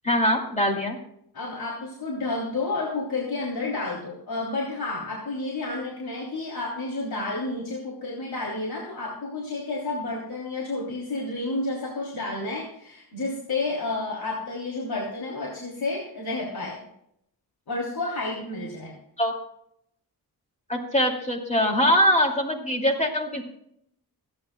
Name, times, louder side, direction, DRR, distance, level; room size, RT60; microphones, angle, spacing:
voice 1, 0.0-1.0 19.2-19.3 20.7-23.4, equal, 20° left, 2 dB, 2.5 m, -22 dB
voice 2, 1.3-16.8 17.7-18.9, left 2 dB, 80° left, -4 dB, 3.3 m, -30 dB
28.0 x 9.8 x 2.3 m, 0.74 s
wide cardioid pair, 140°, 37 cm